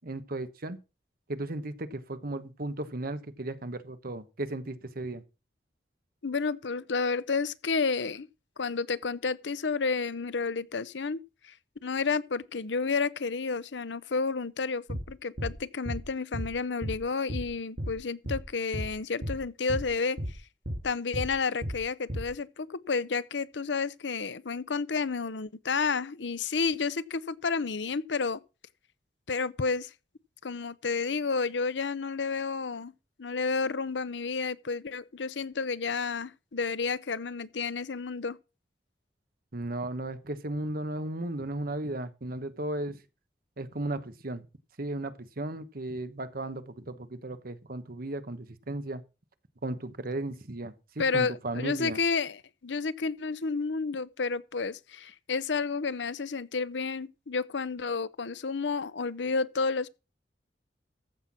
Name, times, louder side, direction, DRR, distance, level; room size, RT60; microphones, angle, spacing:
voice 1, 0.0-0.8 1.3-5.2 39.5-43.0 43.6-44.4 44.8-49.0 49.6-52.0, right 2 dB, 55° right, 1.2 m, -35 dB
voice 2, 6.2-8.3 8.6-11.5 11.8-20.4 20.8-28.4 29.3-29.9 30.4-32.9 33.2-38.4 51.0-59.9, left 4 dB, 85° left, 0.7 m, -31 dB
sound 1, 14.9-15.1 15.4-15.5 15.9-16.0 16.3-16.5 16.8-17.0 17.3-17.5 17.8-17.9 18.3-18.4 18.7-18.9 19.2-19.4 19.7-19.9 20.2-20.3 20.7-20.8 21.1-21.3 21.6-21.8 22.1-22.3, equal, 75° right, 4.1 m, -33 dB
14.5 x 5.8 x 6.0 m
head